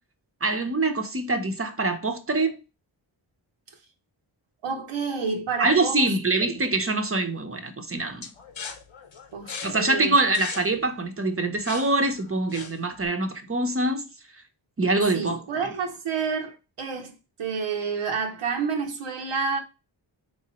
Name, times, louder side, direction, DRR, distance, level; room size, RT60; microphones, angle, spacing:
voice 1, 0.4-2.6 5.6-8.3 9.6-14.1 14.8-15.4, right 2 dB, 30° right, 0.7 m, -24 dB
voice 2, 4.6-6.1 6.4-6.6 9.3-10.1 15.1-19.6, right 5 dB, 85° right, 0.9 m, -29 dB
sound 1, 8.2-13.1, left 6 dB, 70° left, 0.8 m, -39 dB
3.9 x 2.9 x 2.9 m
cardioid pair, 55°, 48 cm